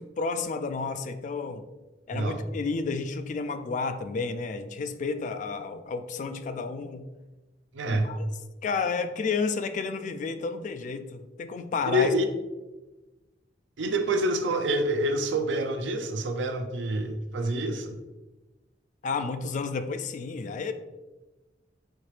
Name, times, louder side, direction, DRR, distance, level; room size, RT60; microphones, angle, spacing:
voice 1, 0.0-1.6 2.1-7.1 7.9-8.3 8.6-12.1 19.0-20.7, left 4 dB, 45° left, 9 dB, 0.3 m, -31 dB
voice 2, 2.1-2.4 7.7-8.1 11.9-12.2 13.8-18.0, right 1 dB, 80° right, 6 dB, 0.5 m, -27 dB
4.5 x 3.7 x 3.2 m, 1.1 s
head